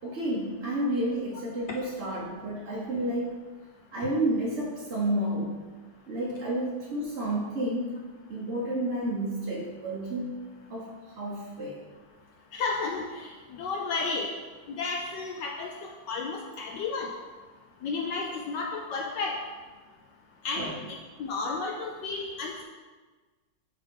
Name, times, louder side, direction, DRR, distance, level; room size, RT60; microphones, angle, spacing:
voice 1, 0.0-3.4 3.9-5.6 6.1-8.0 8.3-10.3 10.7-11.8 20.5-20.8, right 1 dB, 50° right, -6 dB, 0.8 m, -30 dB
voice 2, 12.5-14.3 14.7-17.1 17.8-19.4 20.4-22.6, left 4 dB, 75° left, 1 dB, 1.0 m, -32 dB
6.4 x 4.8 x 3.7 m, 1.3 s
omnidirectional pair, 2.4 m